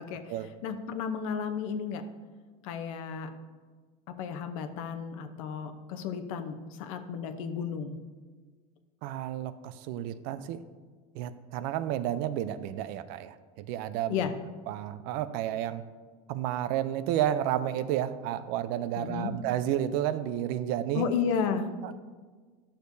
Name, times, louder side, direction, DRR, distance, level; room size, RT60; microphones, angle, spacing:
voice 1, 0.0-0.3 0.6-2.0 2.6-3.3 4.1-8.0 14.1-14.3 19.0-19.3 20.9-21.9, left 6 dB, 70° left, 7 dB, 0.8 m, -33 dB
voice 2, 9.0-10.6 11.1-14.3 14.7-15.8 16.3-21.1 21.8-21.9, right 11 dB, 60° right, 13 dB, 0.5 m, -31 dB
11.5 x 6.5 x 2.7 m, 1.5 s
supercardioid pair, 130°, 17 cm